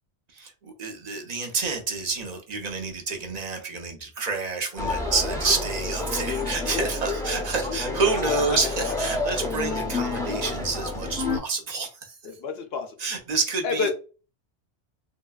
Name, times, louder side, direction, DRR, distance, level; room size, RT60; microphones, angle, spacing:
voice 1, 0.3-12.2 13.0-13.9, right 4 dB, 45° right, 0.7 m, -28 dB
sound 1, 4.8-11.4, left 3 dB, 5° left, 0.6 m, -29 dB
voice 2, 8.3-8.6 12.4-12.9 13.6-13.9, left 5 dB, 65° left, 0.8 m, -28 dB
3.2 x 2.7 x 2.3 m
omnidirectional pair, 1.2 m